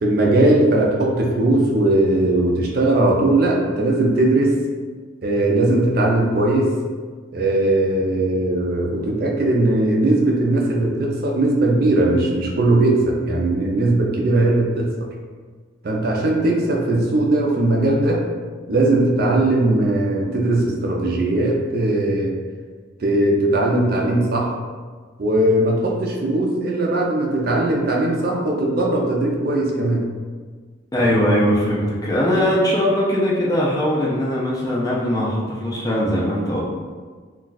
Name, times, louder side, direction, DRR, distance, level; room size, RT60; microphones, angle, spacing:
voice 1, 0.0-4.6 5.2-6.7 7.3-14.9 15.8-18.2 18.7-22.3 23.0-24.5 25.2-30.0, right 2 dB, 50° right, -2 dB, 0.4 m, -19 dB
voice 2, 30.9-36.6, equal, 20° left, -5 dB, 0.4 m, -20 dB
2.3 x 2.2 x 3.9 m, 1.5 s
head